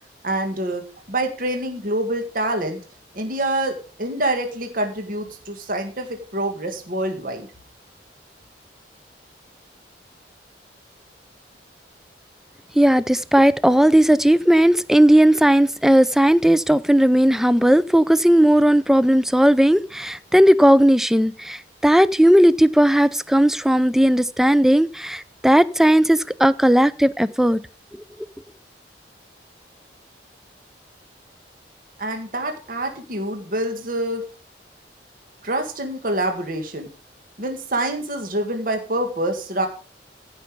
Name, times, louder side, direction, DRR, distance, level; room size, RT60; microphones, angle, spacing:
voice 1, 0.2-2.8 3.1-7.5 32.0-34.2 35.4-36.9 37.4-39.7, right 1 dB, 50° right, 1.8 m, -26 dB
voice 2, 12.8-27.6, equal, 5° right, 0.4 m, -16 dB
15.0 x 5.6 x 5.1 m
head